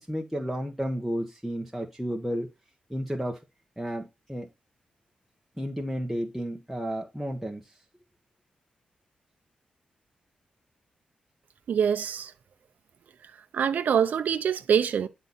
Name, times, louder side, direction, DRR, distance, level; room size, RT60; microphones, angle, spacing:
voice 1, 0.0-2.5 2.9-3.4 3.8-4.5 5.6-7.6, equal, ahead, 1.4 m, -32 dB
voice 2, 11.7-12.3 13.5-15.1, right 7 dB, 75° right, 0.8 m, -24 dB
10.5 x 4.1 x 4.3 m
cardioid pair, 85°, 3 cm